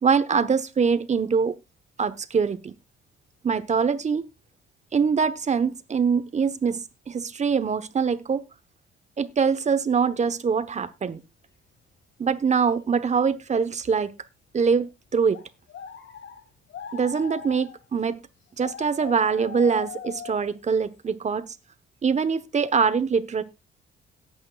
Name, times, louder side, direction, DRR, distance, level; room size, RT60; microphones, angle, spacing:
voice 1, 0.0-1.5 2.0-2.7 3.4-4.3 4.9-8.5 9.2-11.2 12.2-14.1 14.5-15.4 16.9-18.2 18.6-21.4 22.0-23.4, right 6 dB, 35° right, 1.1 m, -23 dB
sound 1, 14.2-14.3 14.7-14.8 15.3-16.4 16.7-17.8 18.6-20.5, left 7 dB, 65° left, 2.1 m, -40 dB
18.0 x 8.8 x 2.4 m
cardioid pair, 90°, 20 cm